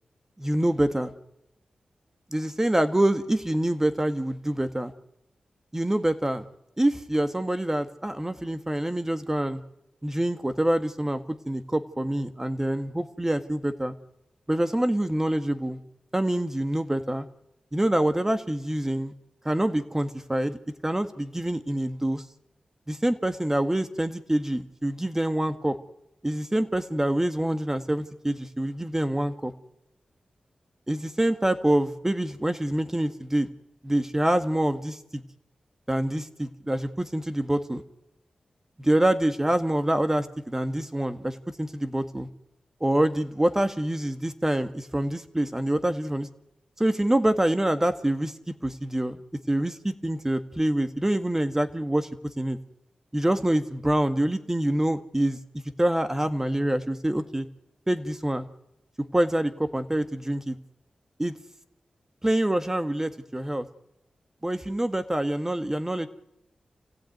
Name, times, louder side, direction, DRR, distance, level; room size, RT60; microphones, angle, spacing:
voice 1, 0.4-1.1 2.3-4.9 5.7-6.4 6.8-9.6 10.0-13.9 14.5-15.8 16.1-17.2 17.7-19.1 19.5-20.6 20.8-22.2 22.9-25.8 26.2-29.5 30.9-33.5 33.8-35.2 35.9-37.8 38.8-42.3 42.8-46.3 46.8-48.3 48.6-49.2 49.5-52.1 52.4-52.6 53.1-55.4 55.8-57.5 57.9-58.5 59.1-60.6 61.2-61.3 62.2-63.7 64.4-66.1, right 1 dB, 15° right, 10 dB, 1.8 m, -26 dB
27.0 x 15.5 x 9.4 m, 0.88 s
cardioid pair, 55°, 2 cm